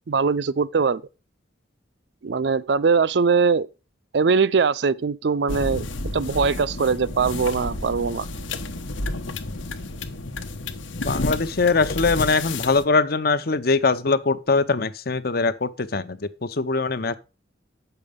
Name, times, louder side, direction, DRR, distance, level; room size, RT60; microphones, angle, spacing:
voice 1, 0.1-1.0 2.2-3.7 4.1-5.9 6.1-8.3, right 5 dB, 60° right, 0.5 m, -21 dB
sound 1, 5.5-12.8, left 2 dB, 85° left, 1.2 m, -31 dB
voice 2, 11.0-17.1, left 4 dB, 50° left, 0.8 m, -22 dB
9.4 x 6.9 x 5.2 m
head